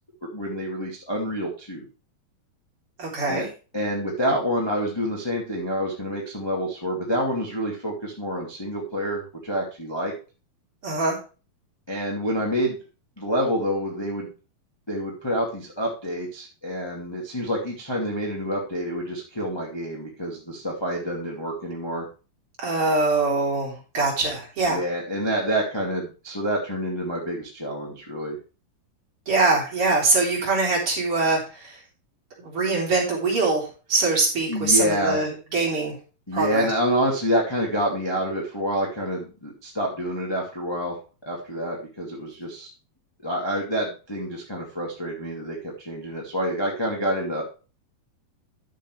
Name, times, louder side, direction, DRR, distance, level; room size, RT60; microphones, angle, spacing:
voice 1, 0.2-1.9 3.3-3.4 3.7-10.1 11.9-12.8 13.2-14.3 14.9-22.1 24.7-28.4 34.5-35.2 36.3-41.0 41.2-42.7 43.2-47.4, equal, 10° left, -3 dB, 1.5 m, -27 dB
voice 2, 3.0-3.5 10.8-11.2 22.6-24.8 29.3-31.8 32.4-35.9 36.3-36.7, right 3 dB, 35° right, -3 dB, 4.2 m, -23 dB
11.5 x 7.4 x 3.3 m, 0.34 s
omnidirectional pair, 4.4 m